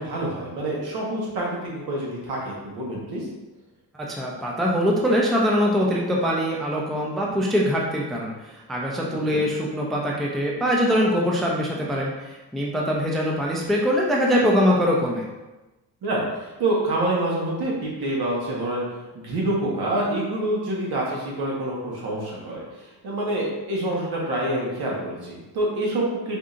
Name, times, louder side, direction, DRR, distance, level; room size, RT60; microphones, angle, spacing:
voice 1, 0.0-3.3 9.1-9.4 16.0-18.9 19.1-26.4, right 1 dB, 70° right, -4 dB, 1.3 m, -27 dB
voice 2, 4.1-15.3, equal, ahead, -3 dB, 0.4 m, -23 dB
4.9 x 2.8 x 2.4 m, 1.1 s
cardioid pair, 135°, 39 cm